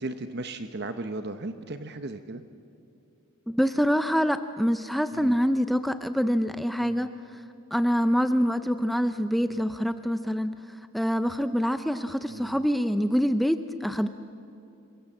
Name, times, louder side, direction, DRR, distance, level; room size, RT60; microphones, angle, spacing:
voice 1, 0.0-2.4 5.1-5.4 6.8-7.1 9.5-9.6 12.3-12.7, right 2 dB, 50° right, 9 dB, 0.9 m, -36 dB
voice 2, 3.5-7.4 7.7-10.5 10.9-14.1, equal, ahead, 10 dB, 0.5 m, -25 dB
28.0 x 23.5 x 7.3 m, 2.7 s
head